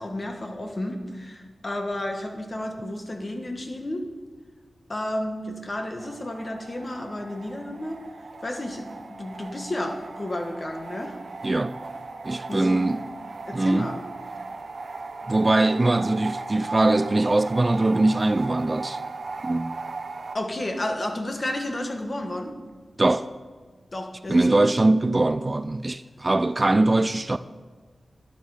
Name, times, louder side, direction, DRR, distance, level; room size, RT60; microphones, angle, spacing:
voice 1, 0.0-4.0 4.9-8.0 8.4-11.2 12.5-13.0 13.4-14.0 20.3-22.5 23.9-24.6, left 1 dB, 35° left, 1.4 m, -32 dB
sound 1, 6.0-20.4, right 3 dB, 65° right, 0.7 m, -37 dB
voice 2, 11.4-11.8 12.2-13.0 13.5-13.9 15.3-19.0 19.4-19.8 23.0-23.2 24.3-27.4, right 2 dB, 30° right, 0.3 m, -22 dB
11.5 x 9.3 x 4.9 m
wide cardioid pair, 90°, 0 cm